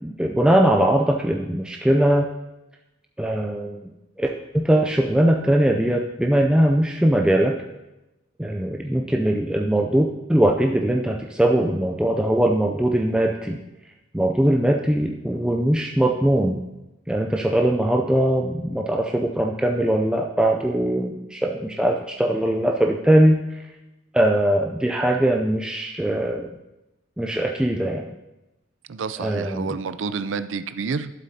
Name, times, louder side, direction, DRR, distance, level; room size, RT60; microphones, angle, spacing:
voice 1, 0.0-2.3 3.2-3.8 4.2-7.6 8.4-13.6 14.1-16.6 17.1-23.4 24.1-26.5 27.2-28.1 29.2-29.8, right 1 dB, 5° right, 1 dB, 0.4 m, -21 dB
voice 2, 28.9-31.1, right 5 dB, 80° right, 12 dB, 0.5 m, -29 dB
12.0 x 7.6 x 2.8 m, 0.98 s
head